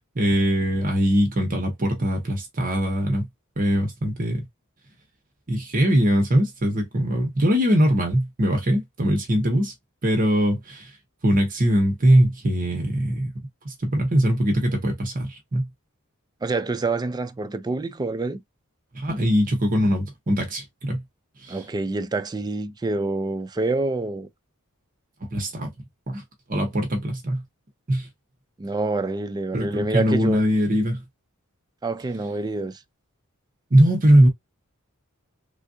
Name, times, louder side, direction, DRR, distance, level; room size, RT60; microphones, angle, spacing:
voice 1, 0.2-3.3 3.6-4.4 5.5-9.7 10.0-10.9 11.2-13.3 13.6-15.7 18.9-21.0 21.4-21.6 25.3-25.7 26.1-26.2 26.5-27.4 27.9-28.1 29.5-31.0 33.7-34.3, equal, 40° right, 0.9 m, -21 dB
voice 2, 16.4-18.4 21.5-24.3 28.6-30.4 31.8-32.8, right 3 dB, 20° right, 0.3 m, -27 dB
3.4 x 2.5 x 2.6 m
head